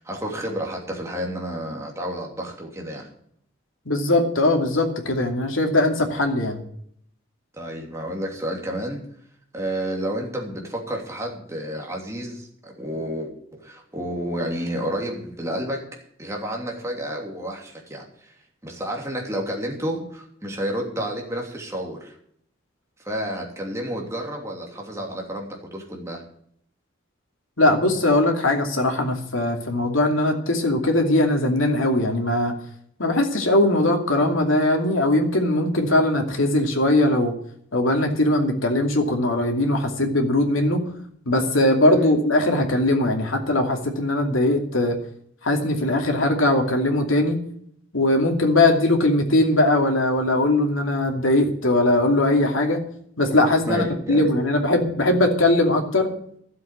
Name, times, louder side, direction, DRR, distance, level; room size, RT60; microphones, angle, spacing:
voice 1, 0.0-3.1 7.5-9.0 9.5-18.3 18.6-22.2 23.0-26.2 41.9-42.1 53.7-54.3, equal, 15° right, 0 dB, 2.9 m, -30 dB
voice 2, 3.9-6.6 27.6-32.5 33.0-37.3 37.7-40.8 41.3-45.0 45.4-47.4 47.9-52.8 53.2-56.1, left 1 dB, 90° left, 3 dB, 2.6 m, -20 dB
12.5 x 7.8 x 8.2 m, 0.66 s
head